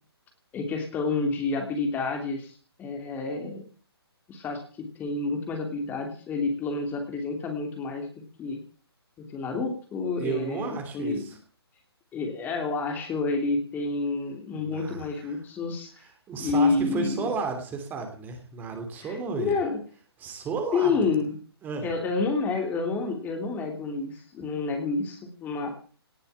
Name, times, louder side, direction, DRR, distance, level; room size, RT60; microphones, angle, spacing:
voice 1, 0.5-3.6 4.3-8.1 8.4-8.6 9.3-11.3 12.1-15.9 16.4-17.3 19.0-19.8 20.7-21.3 21.8-25.7, left 4 dB, 15° left, 4 dB, 2.9 m, -29 dB
voice 2, 10.2-11.4 14.6-15.4 16.0-19.5 20.2-21.0 21.6-21.9, right 5 dB, 15° right, 5 dB, 3.0 m, -33 dB
18.5 x 8.9 x 8.6 m, 0.42 s
figure-of-eight pair, 135°, 14 cm